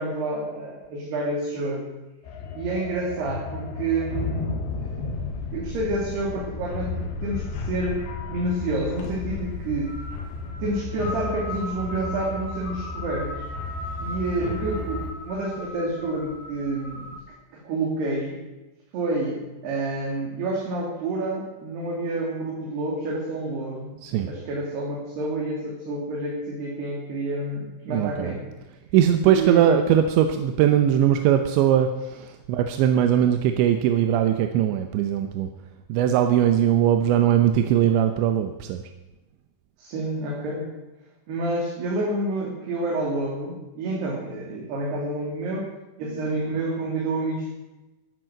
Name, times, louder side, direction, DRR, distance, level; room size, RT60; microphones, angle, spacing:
voice 1, 0.0-1.9 2.5-4.5 4.8-9.9 10.6-13.3 14.0-17.0 17.5-18.4 18.9-28.5 29.2-29.7 39.8-40.7 41.3-45.7 46.0-47.5, right 2 dB, 55° right, -3 dB, 4.3 m, -29 dB
sound 1, 2.3-15.1, left 3 dB, 65° left, 3.5 m, -33 dB
sound 2, 8.8-17.2, left 2 dB, 90° left, 5.9 m, -39 dB
voice 2, 27.9-28.3 28.9-35.5 35.9-38.8, right 10 dB, 75° right, 6 dB, 2.8 m, -20 dB
14.5 x 12.0 x 7.7 m, 1.1 s
omnidirectional pair, 5.9 m